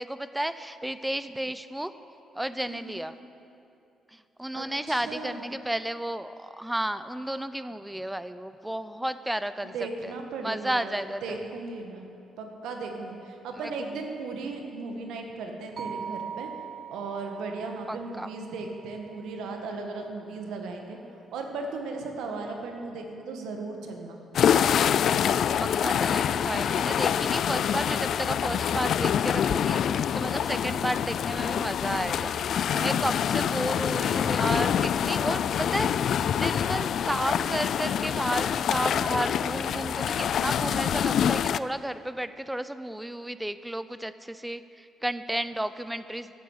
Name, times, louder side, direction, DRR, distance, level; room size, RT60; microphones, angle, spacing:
voice 1, 0.0-1.9 2.3-3.1 4.1-9.7 10.0-11.4 17.9-18.3 25.6-35.9 36.3-46.3, right 1 dB, 5° right, 13 dB, 0.6 m, -32 dB
voice 2, 2.7-3.0 4.5-5.4 9.7-12.1 12.4-16.5 16.9-21.0 21.3-24.2 26.9-27.1 32.7-33.0, right 3 dB, 85° right, 3 dB, 1.6 m, -36 dB
sound 1, 15.8-20.0, right 7 dB, 50° right, 0.9 m, -42 dB
sound 2, 24.3-41.6, left 8 dB, 65° left, 0.3 m, -26 dB
13.0 x 8.0 x 8.1 m, 2.6 s
cardioid pair, 90°, 0 cm